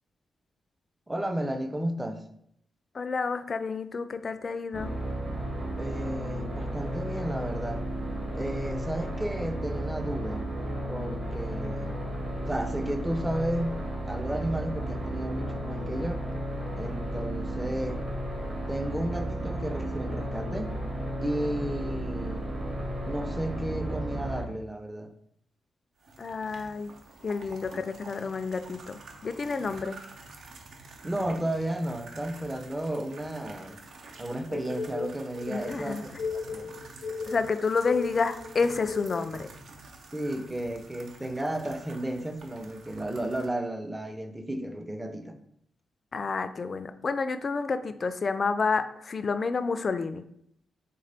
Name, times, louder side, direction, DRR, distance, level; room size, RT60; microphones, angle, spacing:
voice 1, 1.1-2.2 5.8-7.8 8.3-10.5 10.9-12.0 12.5-16.2 16.8-18.0 18.7-20.8 21.2-22.5 23.1-25.1 31.0-33.8 34.2-36.7 40.1-45.4, right 1 dB, 10° right, 8 dB, 0.5 m, -33 dB
voice 2, 2.9-4.9 26.2-26.9 27.2-30.0 35.5-36.0 37.3-39.5 46.1-50.2, left 4 dB, 45° left, 11 dB, 0.3 m, -29 dB
sound 1, 4.7-24.4, right 1 dB, 40° right, 1.1 m, -33 dB
sound 2, 26.0-43.5, right 3 dB, 70° right, 0.6 m, -48 dB
sound 3, 34.5-39.3, left 5 dB, 90° left, 0.6 m, -36 dB
3.7 x 3.6 x 3.3 m, 0.72 s
cardioid pair, 80°, 0 cm